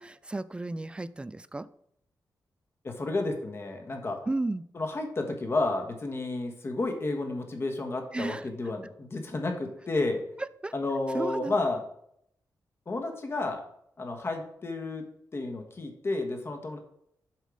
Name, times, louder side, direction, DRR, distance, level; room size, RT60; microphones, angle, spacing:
voice 1, 0.0-1.7 4.3-4.6 8.1-8.5 10.6-10.7 11.1-11.5, right 2 dB, 15° right, 16 dB, 0.3 m, -33 dB
voice 2, 2.8-4.3 4.7-10.2 10.7-11.8 12.9-13.6 14.0-16.8, left 2 dB, 35° left, 4 dB, 1.3 m, -31 dB
7.5 x 5.5 x 4.9 m, 0.71 s
wide cardioid pair, 140°, 7 cm